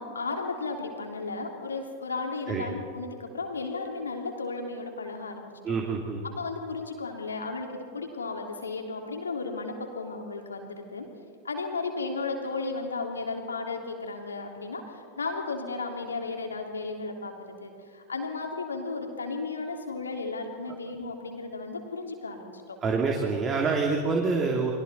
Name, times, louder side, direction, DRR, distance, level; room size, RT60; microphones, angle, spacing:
voice 1, 0.0-5.7 6.2-11.1 11.4-22.8, left 3 dB, 75° left, 2 dB, 3.2 m, -34 dB
voice 2, 5.6-6.2 22.8-24.7, right 4 dB, 25° right, 0 dB, 2.7 m, -26 dB
30.0 x 22.5 x 4.3 m, 2.1 s
figure-of-eight pair, 90°, 0 cm